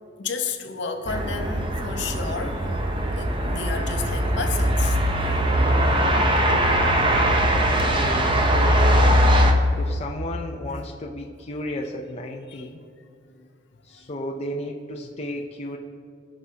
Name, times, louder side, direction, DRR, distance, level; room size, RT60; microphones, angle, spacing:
voice 1, 0.2-2.6 3.2-5.4 8.7-8.8 12.5-12.7, left 5 dB, 65° left, 5 dB, 0.8 m, -32 dB
sound 1, 1.1-9.5, equal, 25° right, 0.7 m, -21 dB
voice 2, 7.7-9.0 9.8-12.8 13.8-15.8, left 1 dB, 35° left, 1 dB, 0.5 m, -33 dB
18.5 x 6.1 x 2.8 m, 2.3 s
head